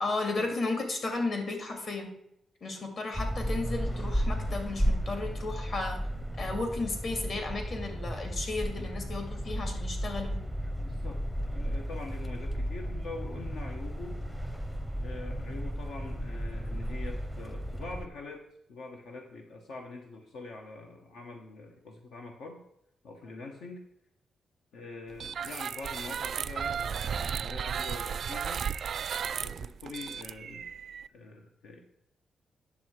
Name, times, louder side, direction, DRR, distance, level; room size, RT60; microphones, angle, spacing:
voice 1, 0.0-2.1 2.6-6.0 6.4-10.4, left 3 dB, 50° left, 4 dB, 2.2 m, -34 dB
sound 1, 3.1-18.1, equal, 5° left, 0.6 m, -34 dB
voice 2, 8.8-9.2 10.8-11.2 11.5-14.2 15.0-18.4 18.7-22.6 23.0-23.8 24.7-28.6 29.4-30.7 31.1-31.8, left 3 dB, 85° left, 2 dB, 1.3 m, -44 dB
sound 2, 25.2-31.1, right 7 dB, 55° right, 0.3 m, -34 dB
9.5 x 7.0 x 4.6 m, 0.81 s
cardioid pair, 130°, 0 cm